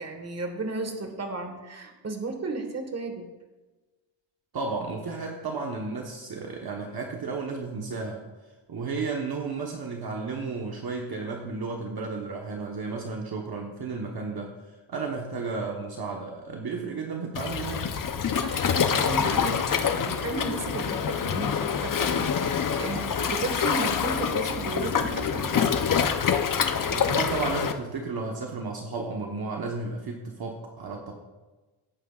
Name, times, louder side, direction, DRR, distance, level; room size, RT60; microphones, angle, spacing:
voice 1, 0.0-3.3 18.3-25.9, right 3 dB, 30° right, 5 dB, 1.5 m, -34 dB
voice 2, 4.5-8.2 8.7-17.9 26.9-31.1, right 4 dB, 50° right, 0 dB, 1.2 m, -33 dB
Waves surf, 17.3-27.7, left 7 dB, 40° left, 0.7 m, -26 dB
17.0 x 9.1 x 2.4 m, 1.2 s
cardioid pair, 125°, 49 cm